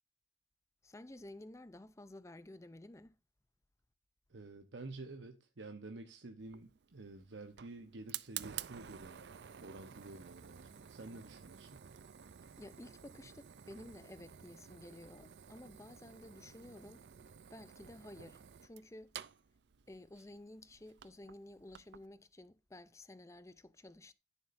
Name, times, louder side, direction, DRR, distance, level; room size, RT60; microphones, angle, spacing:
voice 1, 0.8-3.2 12.6-17.0 17.5-19.1 19.9-24.1, left 1 dB, 15° left, 0.5 m, -53 dB
voice 2, 4.3-9.2 9.6-11.8, right 2 dB, 85° right, 0.9 m, -50 dB
Fire, 6.4-22.1, right 10 dB, 70° right, 0.5 m, -51 dB
11.0 x 9.8 x 2.6 m
head